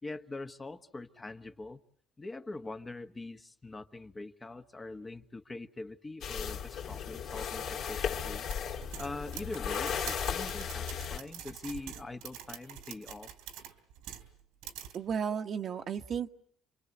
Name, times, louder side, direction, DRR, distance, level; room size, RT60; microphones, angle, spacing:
voice 1, 0.0-1.8 2.2-13.3, left 2 dB, 20° left, 1.3 m, -43 dB
sound 1, 6.2-11.2, left 8 dB, 70° left, 2.9 m, -36 dB
sound 2, 8.5-14.3 14.6-15.0, right 10 dB, 90° right, 3.5 m, -45 dB
voice 2, 14.9-16.3, right 7 dB, 50° right, 1.4 m, -33 dB
29.0 x 24.0 x 8.0 m
cardioid pair, 105°, 0 cm